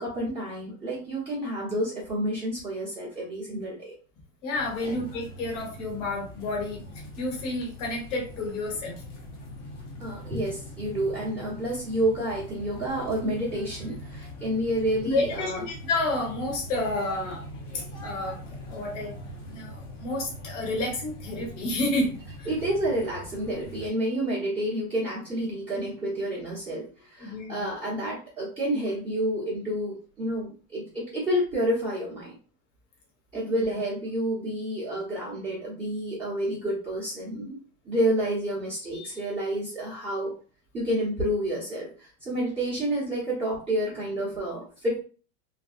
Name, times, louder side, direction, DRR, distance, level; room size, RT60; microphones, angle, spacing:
voice 1, 0.0-3.9 4.8-5.0 10.0-15.6 22.5-32.4 33.3-37.6 37.8-40.3 40.7-45.0, right 1 dB, 15° right, -9 dB, 0.9 m, -29 dB
voice 2, 4.4-6.8 7.2-9.0 15.1-17.4 17.7-19.1 19.5-22.5 27.2-27.6 33.4-33.6, left 2 dB, 65° left, 0 dB, 1.3 m, -30 dB
sound 1, 4.5-23.9, equal, 40° left, 0.7 m, -42 dB
3.4 x 2.2 x 2.4 m, 0.38 s
supercardioid pair, 155°, 39 cm